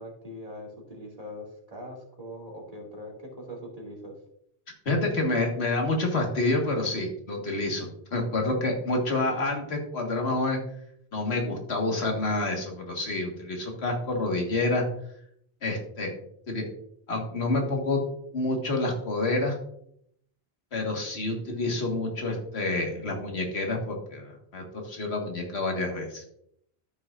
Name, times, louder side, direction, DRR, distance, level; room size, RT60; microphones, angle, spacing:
voice 1, 0.0-4.1, equal, 35° right, -3 dB, 2.4 m, -41 dB
voice 2, 4.9-10.6 11.1-14.8 15.6-16.1 16.5-16.7 17.1-18.0 18.3-19.6 20.7-26.2, left 2 dB, 80° left, 1 dB, 2.0 m, -28 dB
13.0 x 6.2 x 2.5 m, 0.71 s
omnidirectional pair, 1.1 m